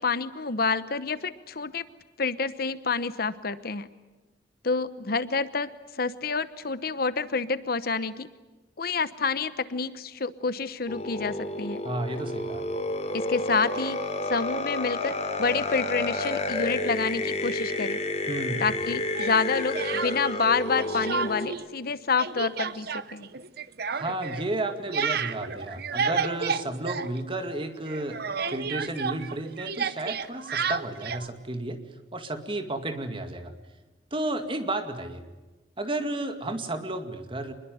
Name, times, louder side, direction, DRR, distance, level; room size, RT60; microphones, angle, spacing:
voice 1, 0.0-1.8 2.2-3.9 4.6-8.3 8.8-11.8 13.1-14.0 14.3-15.1 15.4-18.0 18.6-23.3, left 4 dB, 55° left, 14 dB, 0.9 m, -28 dB
sound 1, 10.9-21.5, left 2 dB, 40° left, 3.1 m, -30 dB
voice 2, 11.8-12.6 18.3-18.6 23.9-28.2 28.5-31.8 32.1-33.5 34.1-35.2 35.8-37.5, right 2 dB, 30° right, 7 dB, 2.2 m, -32 dB
Speech, 19.1-20.5 20.8-21.6 21.9-27.6 27.9-31.3, right 6 dB, 60° right, 1.0 m, -31 dB
26.0 x 21.5 x 9.4 m, 1.2 s
head